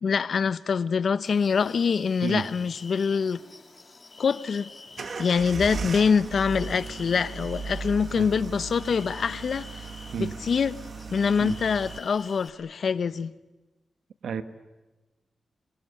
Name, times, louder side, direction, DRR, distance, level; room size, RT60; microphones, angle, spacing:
voice 1, 0.0-3.4 4.2-4.7 5.2-9.7 10.2-10.8 11.1-13.3, left 6 dB, 65° left, 0.9 m, -25 dB
sound 1, 1.2-12.5, left 3 dB, 35° left, 2.6 m, -48 dB
voice 2, 2.2-2.5 8.2-8.3 10.1-10.3 11.4-11.6 14.2-14.4, right 6 dB, 85° right, 1.5 m, -30 dB
sound 2, 4.9-12.0, right 5 dB, 55° right, 1.3 m, -37 dB
24.5 x 23.5 x 9.8 m
wide cardioid pair, 95°, 0 cm